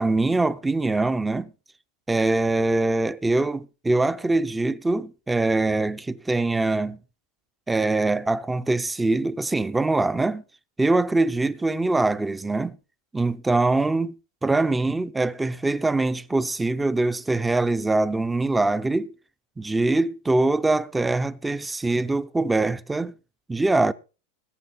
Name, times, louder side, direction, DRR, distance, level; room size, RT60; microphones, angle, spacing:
voice 1, 0.0-1.5 2.1-7.0 7.7-10.4 10.8-12.8 13.1-14.1 14.4-19.1 19.6-23.1 23.5-23.9, right 2 dB, 5° right, 0.6 m, -23 dB
21.0 x 7.7 x 4.0 m
supercardioid pair, 160°, 0 cm